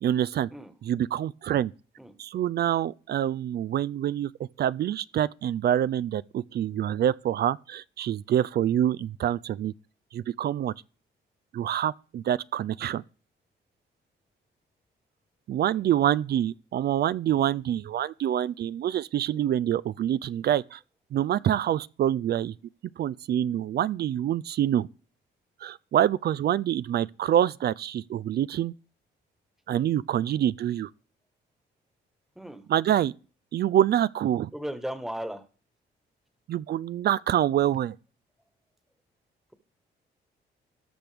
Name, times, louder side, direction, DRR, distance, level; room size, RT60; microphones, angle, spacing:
voice 1, 0.0-0.5 0.9-1.7 2.2-9.7 10.1-10.7 11.5-13.0 15.5-20.8 21.1-22.5 23.0-24.9 25.6-28.7 29.7-30.9 32.7-33.1 33.5-34.5 36.5-37.9, right 11 dB, 55° right, 0.4 m, -26 dB
voice 2, 32.3-32.7 34.5-35.4, equal, ahead, 1.4 m, -36 dB
18.0 x 6.2 x 3.4 m
cardioid pair, 90°, 20 cm